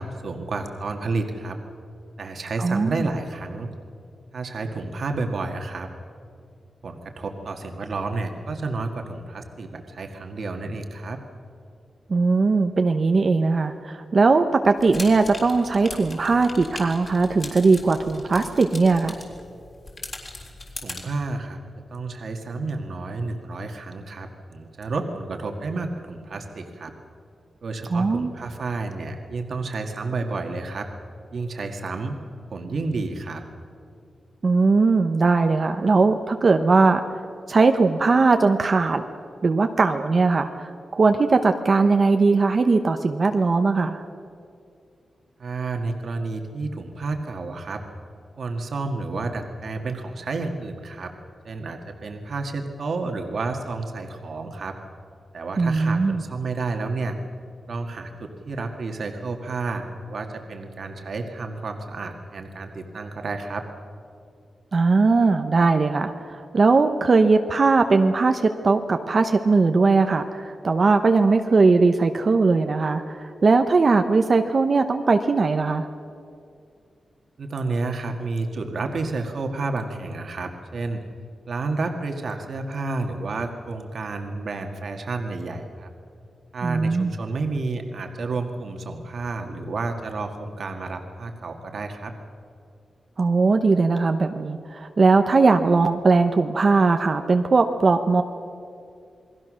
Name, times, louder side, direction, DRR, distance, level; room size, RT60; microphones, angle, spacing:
voice 1, 0.0-1.6 2.2-3.7 4.3-5.9 6.8-11.2 20.8-21.6 21.9-26.9 27.6-30.9 31.3-32.2 32.5-33.4 45.4-47.8 48.4-51.1 51.4-54.8 55.3-57.2 57.7-63.6 77.4-81.0 81.5-85.9 86.5-92.1, right 3 dB, 55° right, 4 dB, 1.9 m, -30 dB
voice 2, 2.6-3.1 12.1-19.1 27.9-28.3 34.4-37.0 37.5-39.0 39.4-44.0 55.6-56.2 64.7-75.9 86.6-87.1 93.2-98.2, right 4 dB, 40° right, 6 dB, 0.9 m, -19 dB
sound 1, 14.8-21.0, left 2 dB, 35° left, 3.6 m, -39 dB
28.5 x 21.0 x 6.4 m, 2.4 s
wide cardioid pair, 165°, 0 cm